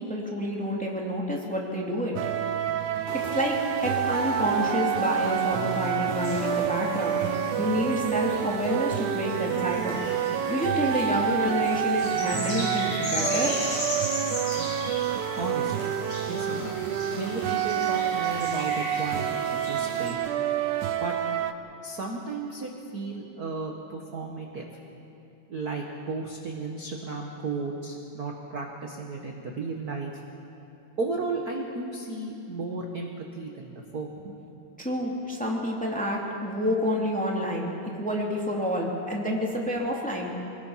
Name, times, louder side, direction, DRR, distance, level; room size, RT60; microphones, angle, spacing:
voice 1, 0.0-2.1 3.3-3.5 3.8-7.3 7.6-10.0 10.5-13.5 34.8-40.3, equal, 5° left, -3 dB, 2.5 m, -28 dB
sound 1, 2.2-21.5, right 10 dB, 85° right, 2.2 m, -28 dB
sound 2, 3.1-7.1, left 3 dB, 85° left, 3.4 m, -38 dB
sound 3, 6.1-20.1, left 1 dB, 65° left, 7.2 m, -37 dB
voice 2, 15.4-15.9 16.2-16.7 17.2-20.2 21.0-21.2 21.8-24.7 25.5-30.1 31.0-34.1 39.5-39.6, right 3 dB, 40° right, 0 dB, 1.6 m, -34 dB
26.5 x 20.0 x 5.9 m, 2.8 s
omnidirectional pair, 3.4 m